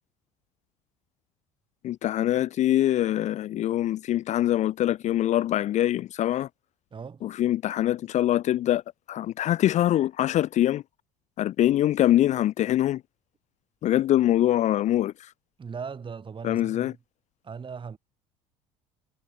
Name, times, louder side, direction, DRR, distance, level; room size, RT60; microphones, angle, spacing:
voice 1, 1.8-6.5 7.2-8.8 9.1-10.8 11.4-13.0 13.8-15.1 16.4-16.9, left 13 dB, 45° left, 0.5 m, -24 dB
voice 2, 6.9-7.2 15.6-17.0 17.4-18.0, right 6 dB, 30° right, 3.1 m, -38 dB
hypercardioid pair, 75°, 16 cm